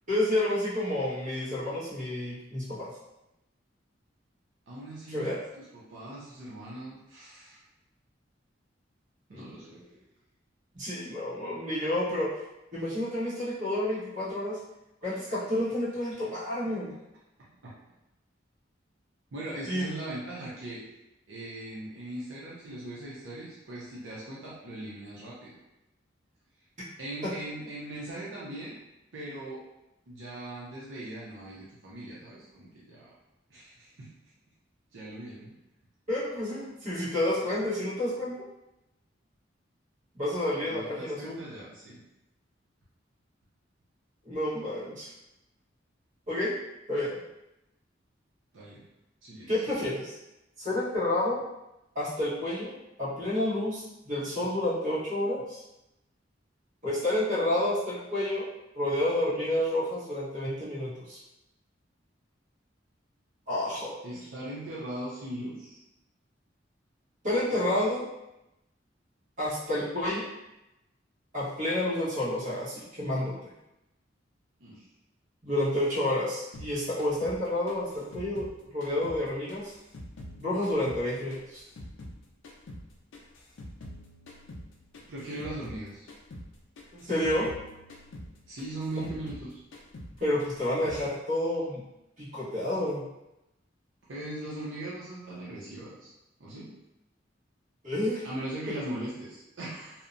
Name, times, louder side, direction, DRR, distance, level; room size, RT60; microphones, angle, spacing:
voice 1, 0.1-2.9 5.1-5.4 9.3-9.9 10.7-12.3 12.7-14.6 15.0-16.9 19.7-19.9 27.2-27.3 36.1-38.3 40.1-41.4 44.2-45.1 46.3-46.5 46.9-47.1 49.5-50.1 50.6-51.4 51.9-55.6 56.8-58.4 58.7-61.2 63.5-64.0 67.2-68.1 69.4-70.2 71.3-73.5 75.4-78.4 78.7-79.7 80.4-81.6 86.9-87.5 88.9-89.1 90.2-91.8 92.2-93.1 97.8-98.3, left 1 dB, 45° right, -10 dB, 1.2 m, -30 dB
voice 2, 4.7-7.6 9.3-9.8 16.6-16.7 17.6-17.7 19.3-20.8 21.3-25.5 27.0-28.7 29.1-29.6 30.1-33.1 33.5-34.1 34.9-35.5 40.7-42.0 48.5-48.8 49.2-49.6 64.0-65.8 74.6-74.8 85.1-86.1 88.5-89.6 94.0-96.1 96.4-96.7 98.2-100.1, right 1 dB, 80° right, -7 dB, 0.6 m, -40 dB
sound 1, 76.5-79.2 79.5-82.2 82.4-85.8 86.1-86.5 86.8-89.5 89.7-90.1 90.4-91.1, left 1 dB, 75° left, 0.4 m, -45 dB
2.7 x 2.1 x 2.5 m, 0.92 s
head